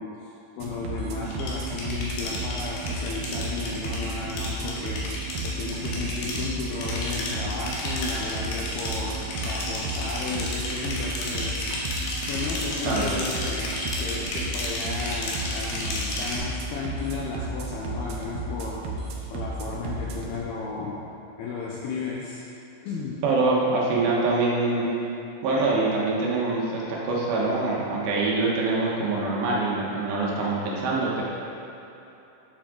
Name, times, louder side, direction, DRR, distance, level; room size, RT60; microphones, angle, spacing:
voice 1, 0.0-12.0 12.3-18.9 19.3-21.1 21.4-22.5 22.8-23.2, left 4 dB, 90° left, -3 dB, 2.2 m, -34 dB
sound 1, 0.6-20.4, right 3 dB, 90° right, 3.3 m, -33 dB
sound 2, 1.3-16.4, left 2 dB, 65° left, 2.4 m, -33 dB
voice 2, 23.2-24.9 25.4-31.2, right 3 dB, 70° right, -4 dB, 3.2 m, -24 dB
9.2 x 7.5 x 3.8 m, 2.9 s
omnidirectional pair, 5.3 m